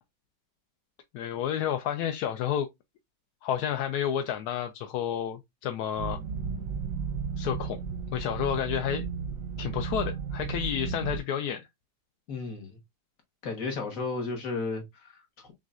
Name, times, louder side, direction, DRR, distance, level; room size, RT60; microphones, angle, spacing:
voice 1, 1.1-2.7 3.4-6.2 7.4-7.8 8.1-9.1 9.6-11.7, left 9 dB, 70° left, 1.0 m, -30 dB
sound 1, 6.0-11.2, right 6 dB, 65° right, 0.9 m, -34 dB
voice 2, 12.3-12.8 13.4-15.5, left 3 dB, 50° left, 1.6 m, -34 dB
6.1 x 2.5 x 2.4 m
omnidirectional pair, 1.9 m